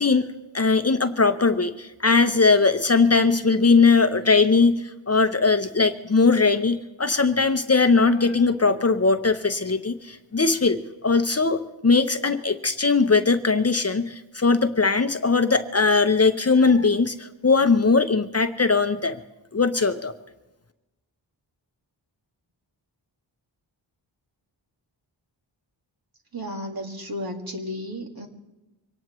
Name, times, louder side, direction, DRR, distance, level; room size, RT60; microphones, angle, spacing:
voice 1, 0.0-19.2 19.5-20.1, left 4 dB, 35° left, 8 dB, 0.7 m, -20 dB
voice 2, 26.3-28.3, equal, 50° right, 3 dB, 2.0 m, -33 dB
24.0 x 18.5 x 3.1 m, 1.0 s
wide cardioid pair, 80°, 45 cm